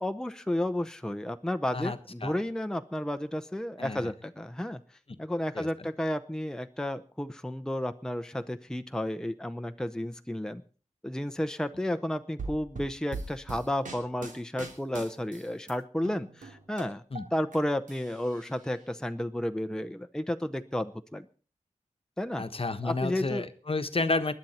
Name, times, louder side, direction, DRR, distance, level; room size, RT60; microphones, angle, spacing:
voice 1, 0.0-4.8 5.2-10.6 11.0-17.0 17.3-21.3 22.2-22.4 22.8-23.5, left 1 dB, 5° left, 8 dB, 0.8 m, -32 dB
sound 1, 12.4-15.7 16.0-17.6 17.9-18.8, right 3 dB, 85° right, 3.1 m, -41 dB
voice 2, 22.4-24.3, left 3 dB, 45° left, 10 dB, 1.1 m, -30 dB
20.0 x 10.5 x 4.3 m, 0.38 s
wide cardioid pair, 75°, 13 cm